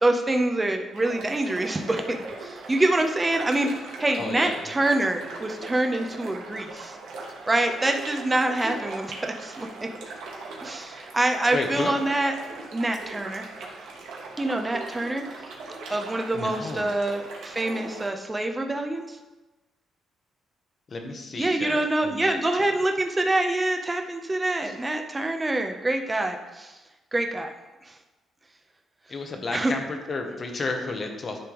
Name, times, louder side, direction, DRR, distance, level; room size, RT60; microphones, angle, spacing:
voice 1, 0.0-3.7 4.0-7.0 7.5-9.7 10.6-12.3 12.7-13.4 14.4-15.2 15.9-19.2 21.4-26.7 27.1-27.5 29.5-29.7, right 2 dB, 20° right, 4 dB, 0.7 m, -25 dB
sound 1, 0.9-18.1, right 3 dB, 85° right, 1.2 m, -40 dB
voice 2, 4.2-4.7 11.5-11.9 16.3-16.9 20.9-22.6 24.6-24.8 29.1-31.4, left 3 dB, 40° left, 4 dB, 0.9 m, -32 dB
10.5 x 3.4 x 3.0 m, 1.1 s
cardioid pair, 90°, 0 cm